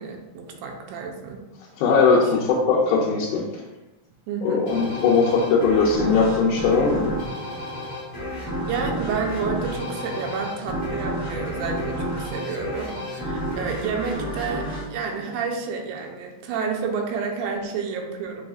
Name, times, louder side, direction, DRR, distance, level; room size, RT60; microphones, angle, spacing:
voice 1, 0.0-1.4 2.1-2.7 4.3-4.7 8.3-18.4, right 5 dB, 90° right, 2 dB, 2.1 m, -30 dB
voice 2, 1.8-3.4 4.4-7.1, left 4 dB, 90° left, -3 dB, 2.1 m, -19 dB
sound 1, 4.7-15.9, equal, 40° left, 0.8 m, -31 dB
5.3 x 3.3 x 2.3 m, 1.1 s
omnidirectional pair, 3.5 m